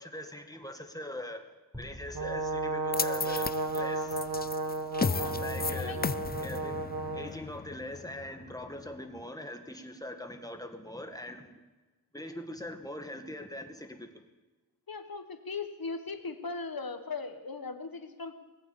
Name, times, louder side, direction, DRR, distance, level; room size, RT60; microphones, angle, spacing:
voice 1, 0.0-4.2 5.4-6.0 6.4-6.9 7.1-11.6 12.1-14.2, left 1 dB, 10° left, 6 dB, 1.7 m, -42 dB
sound 1, 1.7-4.3, left 1 dB, 5° right, 5.0 m, -50 dB
Brass instrument, 2.1-7.3, right 3 dB, 90° right, 1.6 m, -33 dB
sound 2, 2.9-9.2, left 5 dB, 25° left, 0.4 m, -35 dB
voice 2, 5.0-5.3 5.7-6.0 14.9-18.3, left 4 dB, 75° left, 8 dB, 1.5 m, -38 dB
19.0 x 8.8 x 8.5 m, 1.3 s
wide cardioid pair, 60°, 36 cm